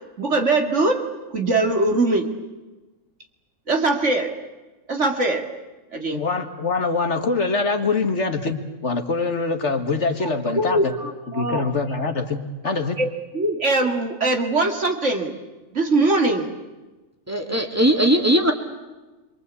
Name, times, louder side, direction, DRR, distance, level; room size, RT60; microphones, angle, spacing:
voice 1, 0.2-1.0 1.3-2.3 3.7-4.3 4.9-5.5 5.9-6.2 10.6-11.6 13.0-13.1 13.3-15.4 15.7-16.5, right 2 dB, 60° right, 4 dB, 2.7 m, -21 dB
voice 2, 6.1-10.9 11.3-13.0, left 3 dB, 60° left, 6 dB, 2.0 m, -24 dB
voice 3, 17.3-18.5, right 1 dB, 10° right, 4 dB, 2.8 m, -19 dB
28.0 x 23.5 x 8.4 m, 1.2 s
omnidirectional pair, 1.4 m